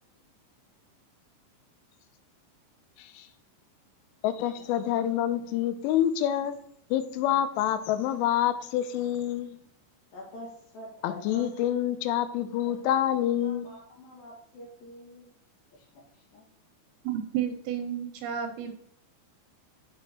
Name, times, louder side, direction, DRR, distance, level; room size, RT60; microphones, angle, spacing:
voice 1, 4.2-6.6 6.9-9.6 11.0-13.7, left 11 dB, 85° left, 12 dB, 3.0 m, -27 dB
voice 2, 10.1-11.6 12.4-12.8 13.4-15.3 15.7-16.5, left 1 dB, 60° left, -2 dB, 3.0 m, -46 dB
voice 3, 17.0-18.7, right 9 dB, 85° right, 4 dB, 2.9 m, -31 dB
7.6 x 6.3 x 2.9 m, 0.70 s
omnidirectional pair, 5.6 m